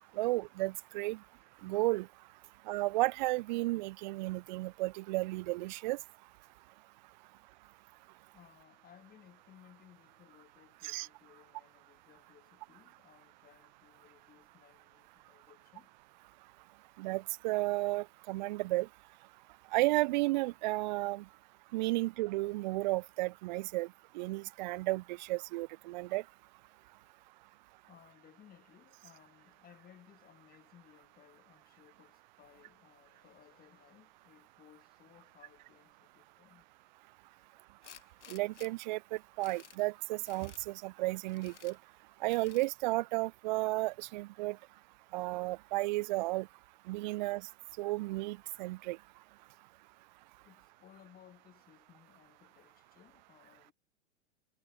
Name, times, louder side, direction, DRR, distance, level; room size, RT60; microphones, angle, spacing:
voice 1, 0.2-1.2 1.6-2.1 2.7-6.0 10.8-11.1 17.0-18.9 19.7-21.2 21.7-23.9 24.1-26.2 38.3-41.8 42.2-44.6 45.1-46.5 46.9-47.5 47.8-49.0, right 20 dB, 40° right, 0.5 m, -33 dB
voice 2, 8.3-15.9 27.0-27.1 27.8-36.7 37.4-37.5 49.5-49.6 50.4-53.7, left 10 dB, 25° left, 3.8 m, -61 dB
Tools, 37.8-38.7 39.2-39.8 40.3-40.6 41.3-41.8 42.3-42.7, left 9 dB, 70° left, 1.8 m, -55 dB
figure-of-eight pair, 100°, 36 cm